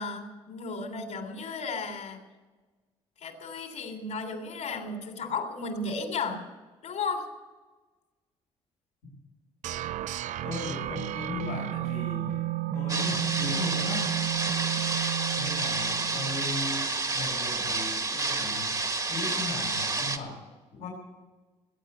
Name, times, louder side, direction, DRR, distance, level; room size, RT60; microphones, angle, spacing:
voice 1, 0.0-2.2 3.2-6.4 6.8-7.3, left 4 dB, 65° left, 6 dB, 3.3 m, -34 dB
sound 1, 9.6-16.6, right 15 dB, 70° right, 0.5 m, -33 dB
voice 2, 10.4-12.4 12.7-14.0 15.4-16.9 17.1-18.7 19.1-20.4 20.7-20.9, left 3 dB, 90° left, -6 dB, 5.0 m, -36 dB
sound 2, 12.9-20.2, right 3 dB, 25° right, 1.6 m, -30 dB
20.0 x 8.9 x 7.9 m, 1.3 s
supercardioid pair, 70°, 13 cm